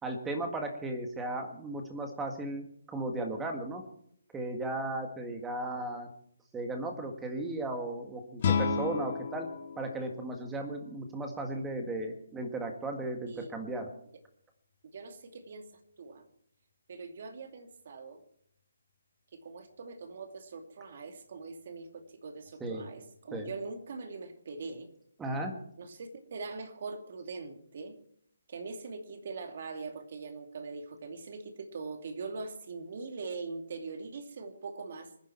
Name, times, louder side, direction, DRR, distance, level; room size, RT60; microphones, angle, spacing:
voice 1, 0.0-3.8 4.3-6.1 6.5-9.5 9.8-13.9 22.6-22.9 23.3-23.5 25.2-25.5, right 2 dB, 5° right, 4 dB, 1.8 m, -36 dB
sound 1, 8.4-11.4, left 5 dB, 35° left, 1.7 m, -33 dB
voice 2, 14.9-15.7 16.0-16.3 16.9-18.2 19.3-24.9 25.8-28.0 28.5-35.1, right 4 dB, 45° right, 5 dB, 2.5 m, -42 dB
25.0 x 10.0 x 4.5 m, 0.67 s
hypercardioid pair, 165°, 0 cm